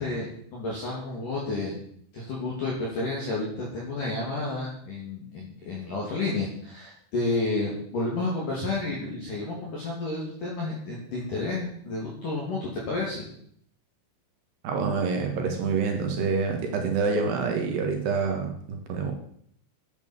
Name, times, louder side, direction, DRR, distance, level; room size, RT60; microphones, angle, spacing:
voice 1, 0.0-1.8 2.1-13.2, left 2 dB, 50° left, -4 dB, 3.8 m, -31 dB
voice 2, 14.6-19.1, right 5 dB, 65° right, 3 dB, 3.6 m, -27 dB
11.0 x 9.2 x 7.4 m, 0.64 s
omnidirectional pair, 5.4 m